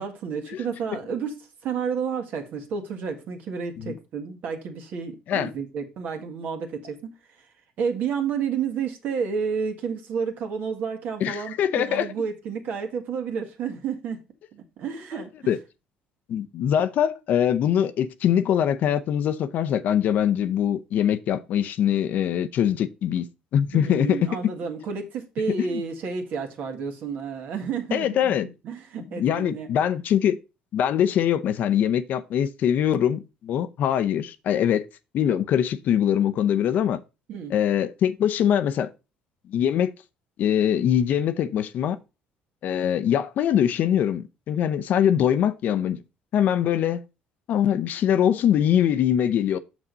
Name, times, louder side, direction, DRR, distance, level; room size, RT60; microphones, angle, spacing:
voice 1, 0.0-7.4 7.8-14.2 14.5-15.5 23.7-29.7 37.3-37.5, right 6 dB, 65° right, 1.8 m, -31 dB
voice 2, 11.2-12.1 15.5-15.6 16.3-23.3 23.5-24.4 25.6-25.8 27.9-28.5 29.2-30.4 30.7-34.9 35.1-37.0 37.5-38.9 39.5-39.9 40.4-42.0 42.6-46.0 46.3-47.0 47.5-49.6, left 9 dB, 60° left, 0.6 m, -23 dB
6.6 x 6.1 x 3.9 m
supercardioid pair, 85°, 3 cm